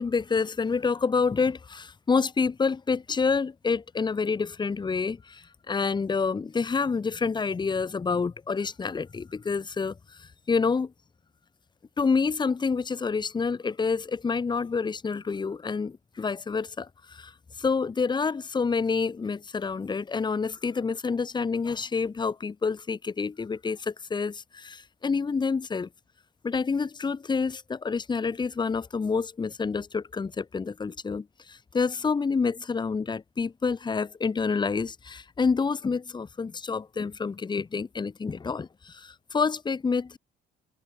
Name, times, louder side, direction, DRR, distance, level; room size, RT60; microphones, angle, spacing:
voice 1, 0.0-10.9 12.0-25.9 26.4-40.2, left 5 dB, 25° left, 3.2 m, -28 dB
cardioid pair, 110°, 17 cm